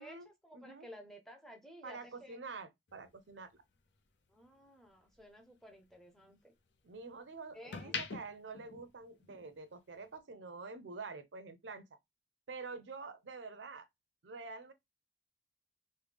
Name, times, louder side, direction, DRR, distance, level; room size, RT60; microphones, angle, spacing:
voice 1, 0.0-2.4 4.3-6.5 7.5-8.0, equal, ahead, 0.6 m, -54 dB
voice 2, 0.5-0.9 1.8-3.6 6.8-11.8 12.5-13.9 14.2-14.7, right 4 dB, 90° right, 0.6 m, -47 dB
sound 1, 2.9-5.2 5.6-7.0 7.5-9.6 9.9-10.2, left 5 dB, 80° left, 0.6 m, -45 dB
3.2 x 2.2 x 3.3 m
head